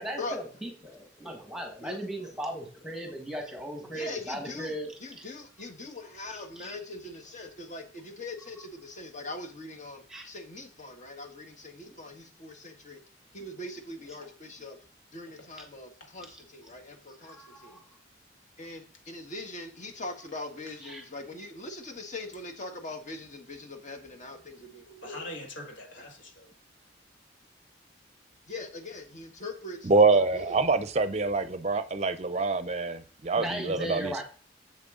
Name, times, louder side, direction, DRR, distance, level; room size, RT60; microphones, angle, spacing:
voice 1, 0.0-5.2 6.3-6.7 10.1-10.3 15.6-15.7 17.3-17.8 20.8-21.1 33.3-34.2, right 1 dB, 5° right, 1.6 m, -37 dB
voice 2, 3.9-4.7 5.0-13.0 13.3-14.8 15.1-17.4 17.6-17.8 18.6-25.2 28.5-30.6, left 2 dB, 40° left, 1.5 m, -41 dB
voice 3, 25.0-26.5, left 1 dB, 80° left, 1.7 m, -44 dB
voice 4, 29.8-34.2, right 3 dB, 35° right, 0.6 m, -25 dB
7.6 x 7.4 x 3.8 m
head